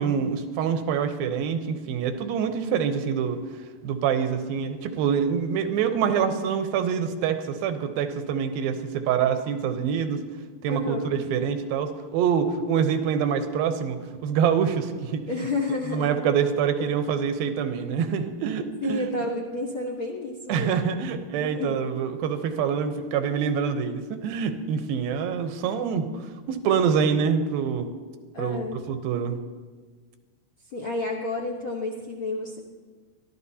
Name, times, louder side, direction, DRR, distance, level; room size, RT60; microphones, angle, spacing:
voice 1, 0.0-3.4 3.8-10.2 10.6-15.3 15.9-19.1 20.5-26.1 26.5-27.9 28.4-29.4, right 7 dB, 90° right, 8 dB, 2.7 m, -25 dB
voice 2, 10.7-11.2 15.3-16.1 18.8-20.9 21.3-21.8 28.3-28.8 30.7-32.6, left 2 dB, 75° left, 0 dB, 1.2 m, -30 dB
24.0 x 13.0 x 2.8 m, 1.5 s
omnidirectional pair, 4.1 m